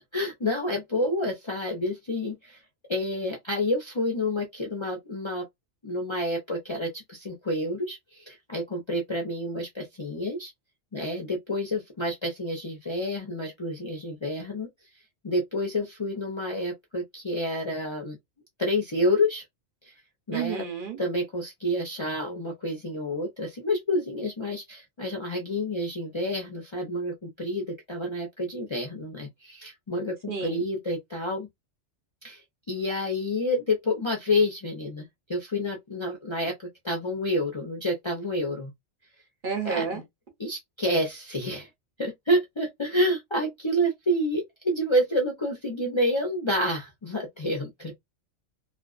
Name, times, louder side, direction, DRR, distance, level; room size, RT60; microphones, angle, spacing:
voice 1, 0.1-2.6 2.9-5.4 5.8-10.5 10.9-14.7 15.2-18.2 18.6-19.4 19.9-20.0 20.3-20.7 21.0-31.5 32.2-32.4 32.7-38.7 39.6-40.0 40.4-41.7 42.0-47.9, left 1 dB, 35° left, 0.5 m, -29 dB
voice 2, 20.3-21.0 30.3-30.6 39.4-40.0, right 6 dB, 50° right, 0.8 m, -30 dB
2.4 x 2.3 x 2.3 m
omnidirectional pair, 1.2 m